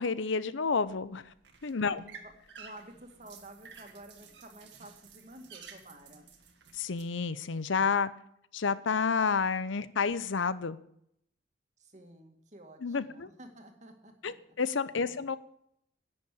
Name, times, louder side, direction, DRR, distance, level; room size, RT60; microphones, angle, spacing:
voice 1, 0.0-1.3 1.6-2.0 6.7-8.1 8.5-10.8 12.8-13.3 14.2-15.4, left 5 dB, 80° left, 16 dB, 0.7 m, -30 dB
sound 1, 0.8-7.0, right 6 dB, 65° right, 1.8 m, -53 dB
voice 2, 1.9-6.3 11.8-14.3 15.0-15.2, right 1 dB, 40° right, 4 dB, 2.0 m, -51 dB
11.0 x 8.6 x 8.3 m, 0.72 s
head